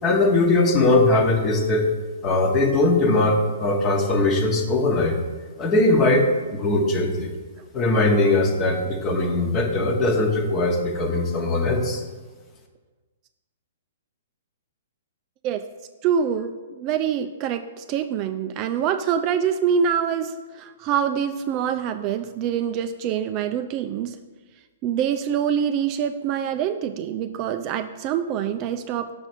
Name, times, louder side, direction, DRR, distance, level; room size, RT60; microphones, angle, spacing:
voice 1, 0.0-1.9 2.2-5.2 5.6-7.3 7.7-12.0, left 2 dB, 20° left, 3 dB, 1.1 m, -20 dB
voice 2, 16.0-24.2 24.8-29.3, right 8 dB, 30° right, 7 dB, 0.3 m, -25 dB
6.8 x 4.1 x 6.0 m, 1.3 s
hypercardioid pair, 150°, 0 cm